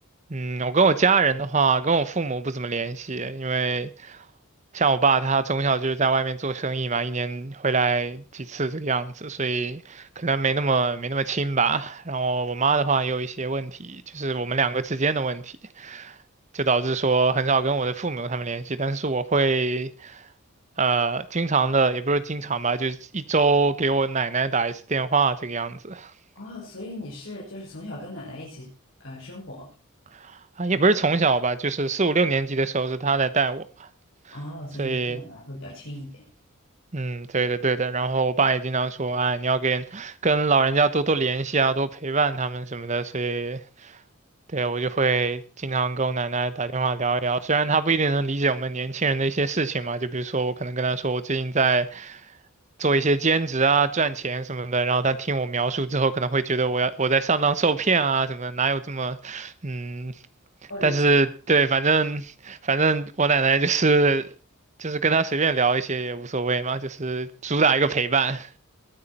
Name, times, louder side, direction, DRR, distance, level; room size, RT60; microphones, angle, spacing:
voice 1, 0.3-4.2 4.7-16.1 16.5-20.2 20.8-26.1 30.2-30.3 30.6-33.9 34.8-35.2 36.9-43.9 44.5-52.2 52.8-60.1 60.8-64.3 64.8-68.5, right 4 dB, 35° right, 0.9 m, -24 dB
voice 2, 26.3-28.7 29.0-29.7 34.3-36.1 60.7-61.0, left 1 dB, 65° left, 6.1 m, -38 dB
21.5 x 9.5 x 4.3 m
head